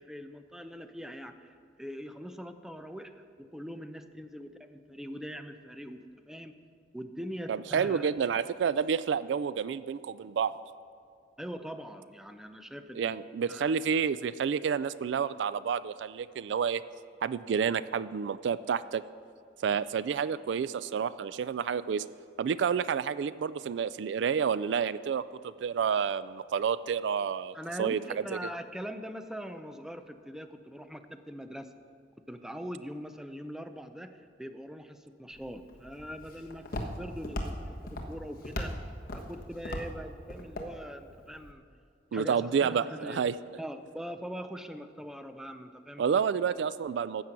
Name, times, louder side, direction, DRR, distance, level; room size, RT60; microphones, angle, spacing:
voice 1, 0.0-6.5 6.9-8.4 11.4-13.2 13.5-13.8 27.5-31.7 32.3-41.6 42.1-43.2 43.6-46.2, equal, 5° right, 8 dB, 0.5 m, -42 dB
voice 2, 7.5-10.5 13.0-16.8 17.2-19.0 19.6-22.0 22.4-28.4 42.1-43.3 46.0-47.2, right 7 dB, 75° right, 16 dB, 0.3 m, -29 dB
Walk footsteps, 35.3-41.5, left 1 dB, 55° left, 1.3 m, -39 dB
13.5 x 8.1 x 5.9 m, 2.3 s
head